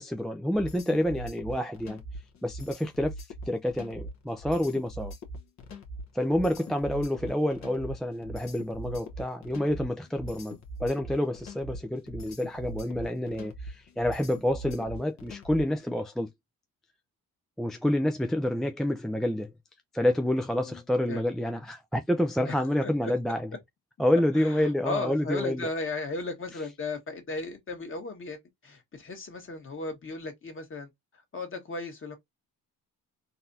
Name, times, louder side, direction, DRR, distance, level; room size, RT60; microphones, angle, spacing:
voice 1, 0.0-2.0 2.4-3.1 3.5-5.1 6.1-16.3 17.6-19.5 19.9-23.5 24.0-25.7, left 1 dB, ahead, 0.4 m, -28 dB
sound 1, 0.5-15.8, right 1 dB, 55° left, 1.1 m, -41 dB
voice 2, 22.4-23.1 24.3-30.9 31.3-32.2, left 3 dB, 35° left, 1.5 m, -36 dB
4.0 x 2.6 x 2.7 m
cardioid pair, 90°, 34 cm